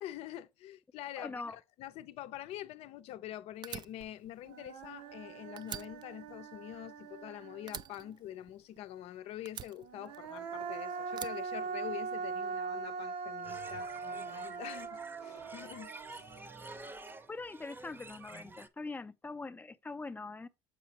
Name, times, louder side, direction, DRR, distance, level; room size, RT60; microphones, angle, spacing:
voice 1, 0.0-16.3, left 13 dB, 65° left, 0.6 m, -45 dB
voice 2, 1.2-1.6 17.3-20.5, left 3 dB, 15° left, 0.5 m, -42 dB
Fire, 3.6-5.3 5.6-7.3 7.7-9.0 9.5-10.6 11.1-12.3, right 9 dB, 45° right, 0.4 m, -46 dB
Human voice, 4.0-4.1 4.5-8.1 9.8-17.0, right 5 dB, 90° right, 1.0 m, -41 dB
sound 1, 13.4-18.7, right 3 dB, 20° right, 0.7 m, -49 dB
7.4 x 5.0 x 2.9 m
supercardioid pair, 95°, 11 cm